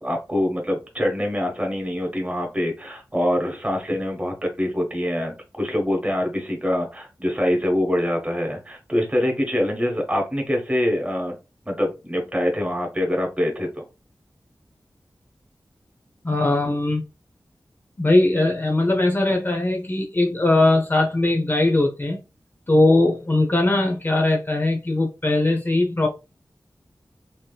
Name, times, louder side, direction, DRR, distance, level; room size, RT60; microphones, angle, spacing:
voice 1, 0.0-11.3 11.7-13.8, left 1 dB, 20° right, 1.1 m, -24 dB
voice 2, 16.2-17.0 18.0-22.2 22.7-26.1, left 2 dB, 30° left, 0.6 m, -20 dB
3.3 x 2.8 x 2.3 m
wide cardioid pair, 80°, 7 cm